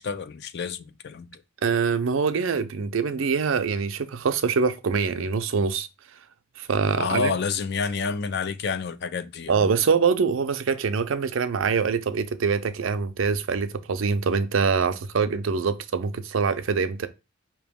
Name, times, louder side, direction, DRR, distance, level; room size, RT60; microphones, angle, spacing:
voice 1, 0.0-1.4 7.0-9.7, left 5 dB, 50° left, 0.4 m, -29 dB
voice 2, 1.6-5.9 6.6-7.3 9.5-17.1, right 5 dB, 65° right, 0.5 m, -24 dB
5.2 x 3.0 x 3.5 m
head